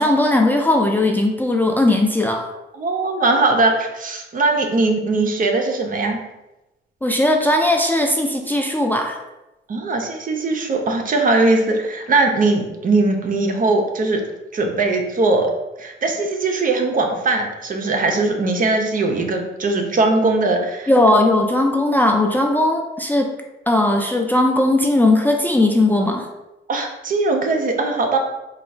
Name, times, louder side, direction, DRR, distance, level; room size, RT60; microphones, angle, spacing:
voice 1, 0.0-2.5 7.0-9.2 20.9-23.3 23.7-26.3, left 1 dB, 10° left, 2 dB, 0.4 m, -18 dB
voice 2, 2.7-6.2 9.7-14.2 14.5-15.5 15.8-20.9 26.7-28.2, right 3 dB, 45° right, 3 dB, 0.7 m, -20 dB
3.9 x 2.3 x 4.4 m, 0.98 s
cardioid pair, 90°, 20 cm